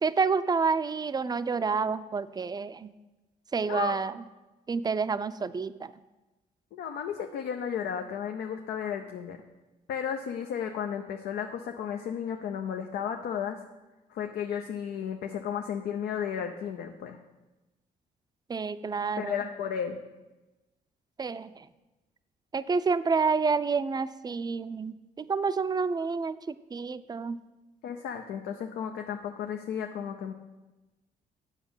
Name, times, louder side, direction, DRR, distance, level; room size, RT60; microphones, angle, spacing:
voice 1, 0.0-2.9 3.5-4.1 4.7-5.9 18.5-19.4 21.2-21.6 22.5-27.4, right 5 dB, 25° right, 14 dB, 0.4 m, -29 dB
voice 2, 3.6-4.0 6.7-9.4 9.9-13.6 14.1-17.2 19.2-20.0 27.8-30.3, left 8 dB, 80° left, 4 dB, 0.6 m, -34 dB
8.2 x 5.9 x 5.6 m, 1.1 s
cardioid pair, 70°, 16 cm